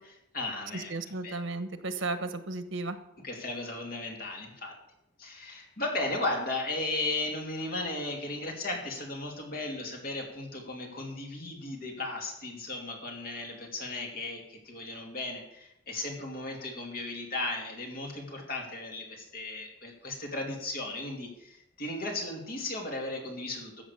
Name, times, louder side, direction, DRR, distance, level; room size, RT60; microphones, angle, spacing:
voice 1, 0.0-0.9 1.2-1.4 3.2-4.7 5.2-23.8, left 2 dB, 50° left, 1 dB, 2.9 m, -36 dB
voice 2, 0.7-3.0, right 3 dB, 85° right, 10 dB, 1.2 m, -34 dB
14.0 x 7.3 x 6.7 m, 0.81 s
head